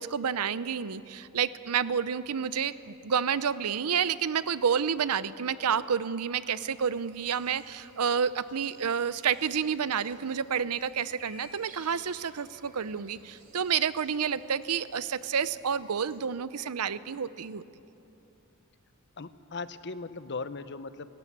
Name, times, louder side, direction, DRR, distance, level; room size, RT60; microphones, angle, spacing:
voice 1, 0.0-17.6, right 7 dB, 85° right, 16 dB, 0.7 m, -29 dB
sound 1, 6.6-16.2, right 2 dB, 40° right, 2.8 m, -56 dB
voice 2, 19.2-21.1, left 4 dB, 50° left, 13 dB, 0.8 m, -38 dB
29.0 x 17.0 x 7.4 m, 2.9 s
head